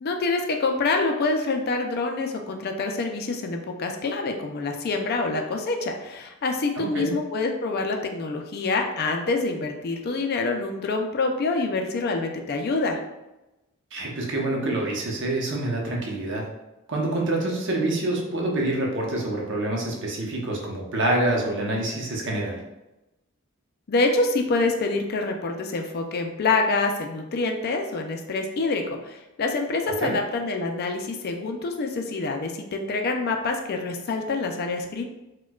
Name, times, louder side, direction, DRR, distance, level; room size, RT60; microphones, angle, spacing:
voice 1, 0.0-13.0 23.9-35.0, left 3 dB, 50° left, 4 dB, 0.4 m, -26 dB
voice 2, 6.8-7.1 13.9-16.5 16.9-22.6 29.9-30.1, right 2 dB, 60° right, -1 dB, 0.8 m, -26 dB
4.3 x 2.2 x 2.3 m, 0.97 s
head